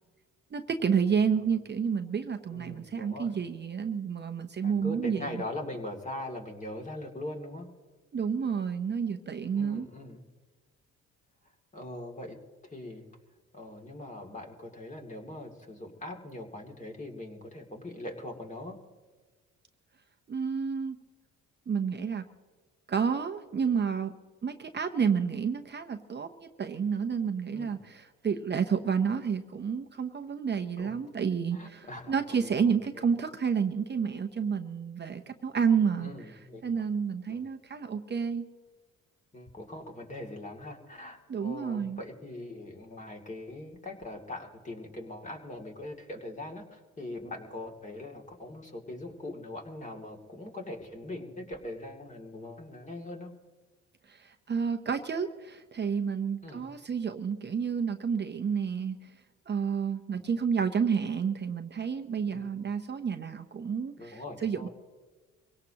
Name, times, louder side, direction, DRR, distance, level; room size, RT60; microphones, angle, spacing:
voice 1, 0.5-5.3 8.1-9.9 20.3-21.0 21.7-22.2 22.9-24.1 24.4-36.1 36.6-38.5 41.3-42.0 54.1-59.1 59.5-64.7, right 6 dB, 35° right, 6 dB, 0.8 m, -30 dB
voice 2, 2.5-3.4 4.6-7.7 9.5-10.2 11.7-13.1 13.5-18.8 27.5-27.7 30.8-30.9 31.5-33.0 36.0-36.6 37.3-37.5 39.3-53.3 56.4-56.7 60.1-60.2 62.3-62.6 64.0-64.7, left 1 dB, 25° left, 2 dB, 2.7 m, -41 dB
24.0 x 17.5 x 3.0 m, 1.4 s
cardioid pair, 90°, 30 cm